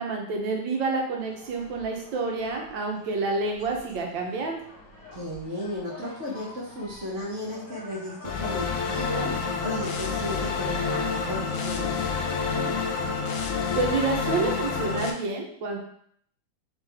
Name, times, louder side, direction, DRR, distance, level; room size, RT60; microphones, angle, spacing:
voice 1, 0.0-4.6 13.7-15.8, right 3 dB, 75° right, 1 dB, 1.6 m, -28 dB
sound 1, 1.2-9.3, left 3 dB, 70° left, 2.1 m, -47 dB
voice 2, 5.1-12.9, left 1 dB, 45° right, -4 dB, 1.1 m, -35 dB
sound 2, 8.2-15.1, left 5 dB, 85° left, 0.7 m, -28 dB
4.1 x 3.3 x 3.4 m, 0.65 s
omnidirectional pair, 2.1 m